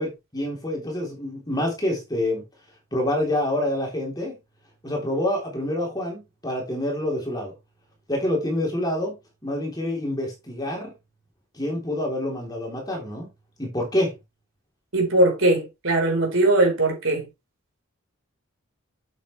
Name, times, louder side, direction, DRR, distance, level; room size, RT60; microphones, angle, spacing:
voice 1, 0.0-2.4 2.9-4.3 4.8-7.5 8.1-9.2 9.4-10.9 11.5-13.3 13.6-14.2, left 1 dB, 15° left, 3.5 m, -27 dB
voice 2, 14.9-17.3, right 2 dB, 60° right, 4.2 m, -20 dB
8.4 x 8.0 x 3.3 m
head